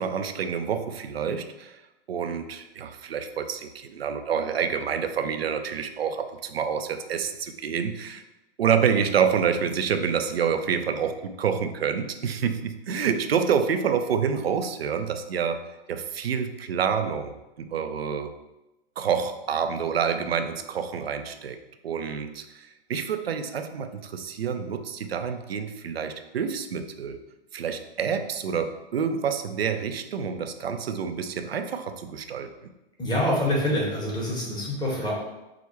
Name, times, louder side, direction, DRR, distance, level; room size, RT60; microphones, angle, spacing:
voice 1, 0.0-1.8 2.1-8.2 8.6-15.6 15.9-18.4 19.0-21.6 21.8-27.2 27.5-32.5, right 7 dB, 85° right, 8 dB, 0.5 m, -28 dB
voice 2, 33.0-35.1, left 1 dB, 15° left, -3 dB, 1.3 m, -26 dB
4.8 x 2.1 x 4.4 m, 0.99 s
hypercardioid pair, 105°, 29 cm